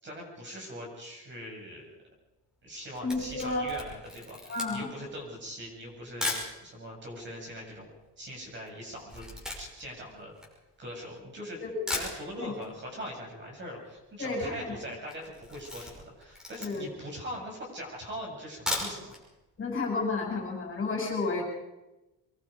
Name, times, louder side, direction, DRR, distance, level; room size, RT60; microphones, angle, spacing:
voice 1, 0.0-1.9 2.6-7.9 8.2-9.3 9.6-10.3 10.8-11.6 11.9-19.2, equal, 30° right, 0 dB, 7.0 m, -41 dB
Camera, 2.7-6.5 7.2-7.3 7.5-11.2 11.6-11.7 11.9-12.7 13.0-13.1 13.4-13.5 13.6-14.1 14.4-14.6 15.0-17.0 17.5-17.6 18.4-19.2 19.6-19.7 20.0-20.1, left 2 dB, ahead, 5.8 m, -37 dB
voice 2, 3.0-3.7 4.5-4.9 11.6-11.7 12.4-12.5 14.2-14.8 16.6-16.8 19.6-21.4, left 3 dB, 35° left, 0 dB, 6.5 m, -31 dB
24.5 x 22.5 x 5.2 m, 1.0 s
cardioid pair, 180°, 38 cm